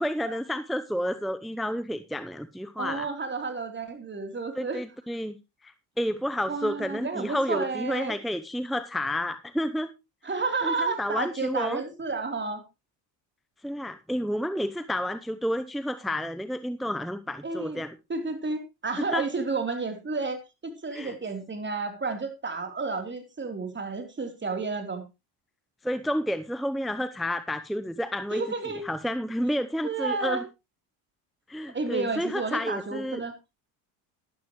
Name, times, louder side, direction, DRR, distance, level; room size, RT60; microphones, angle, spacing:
voice 1, 0.0-3.1 4.6-5.4 5.6-9.9 10.6-11.8 13.6-17.9 19.0-19.2 20.9-21.2 25.8-28.4 28.8-30.4 31.5-33.2, equal, ahead, 11 dB, 0.7 m, -30 dB
voice 2, 2.8-4.8 6.5-8.1 10.2-12.6 17.4-17.8 18.1-25.0 28.3-28.8 29.8-30.4 31.6-33.3, right 4 dB, 25° right, 5 dB, 3.6 m, -31 dB
12.5 x 12.0 x 3.1 m, 0.26 s
supercardioid pair, 85°, 46 cm